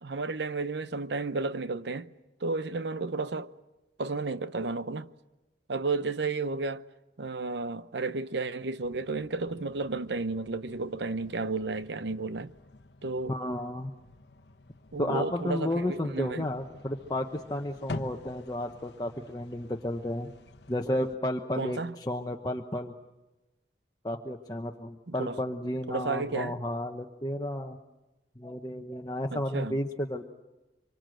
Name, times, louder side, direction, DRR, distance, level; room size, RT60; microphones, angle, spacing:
voice 1, 0.0-2.1 2.4-3.5 4.0-5.1 5.7-6.8 7.2-12.5 13.0-13.3 14.9-16.5 21.6-21.9 25.1-25.4 25.9-26.6 29.3-29.8, right 3 dB, 75° right, 0.8 m, -32 dB
sound 1, 8.8-21.2, left 2 dB, 75° left, 1.1 m, -48 dB
voice 2, 13.3-13.9 15.0-20.3 20.7-22.9 24.0-27.8 28.4-30.2, left 1 dB, 20° left, 1.0 m, -32 dB
25.5 x 24.5 x 7.8 m
head